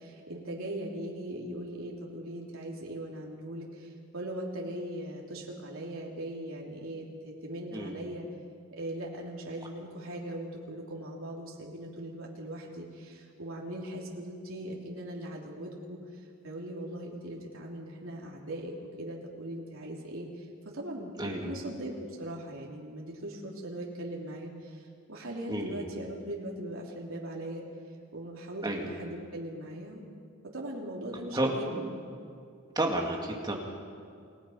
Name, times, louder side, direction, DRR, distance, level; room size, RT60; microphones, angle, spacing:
voice 1, 0.0-8.3 8.7-20.5 20.7-27.6 28.1-30.1 30.5-31.9, right 1 dB, 75° right, -2 dB, 3.1 m, -40 dB
voice 2, 21.2-21.5 25.5-25.8 28.6-28.9 31.3-31.5 32.8-33.6, right 1 dB, 20° right, 1 dB, 2.3 m, -31 dB
29.0 x 18.5 x 5.7 m, 2.3 s
head